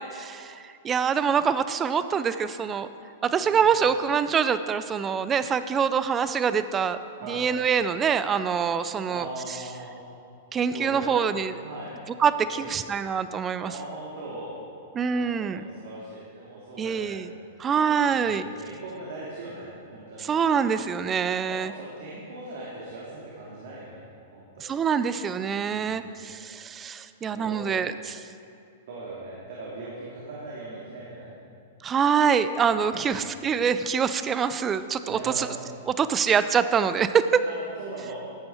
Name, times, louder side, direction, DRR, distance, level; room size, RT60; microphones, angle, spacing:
voice 1, 0.0-2.9 3.2-7.0 7.3-9.3 10.5-11.5 12.2-13.7 14.9-15.6 16.8-17.3 17.6-18.5 20.2-21.7 24.6-28.3 31.8-35.5 35.9-37.4, right 7 dB, 25° right, 12 dB, 0.5 m, -25 dB
voice 2, 9.1-9.9 10.7-11.2 11.6-12.0 12.5-12.7 13.6-14.5 15.1-17.2 17.7-20.3 21.4-24.0 24.3-24.7 25.7-26.0 27.3-27.9 28.9-31.3 32.9-33.2 35.1-35.5 37.5-38.2, right 2 dB, 65° right, -5 dB, 2.5 m, -40 dB
14.5 x 8.6 x 4.5 m, 2.5 s
hypercardioid pair, 115°, 0 cm